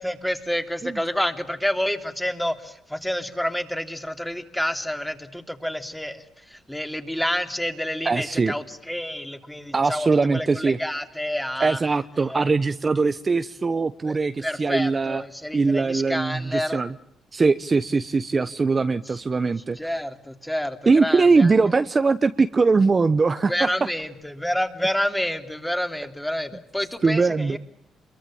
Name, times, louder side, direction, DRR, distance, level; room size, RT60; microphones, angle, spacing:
voice 1, 0.0-11.8 12.2-12.4 14.1-16.8 19.8-21.5 23.5-27.6, equal, 5° left, 7 dB, 3.2 m, -29 dB
voice 2, 8.0-8.5 9.7-10.8 11.6-15.2 15.5-16.9 17.3-19.9 20.9-23.7 27.0-27.6, right 4 dB, 30° right, 11 dB, 1.1 m, -21 dB
27.5 x 23.0 x 8.8 m, 0.74 s
cardioid pair, 90°, 0 cm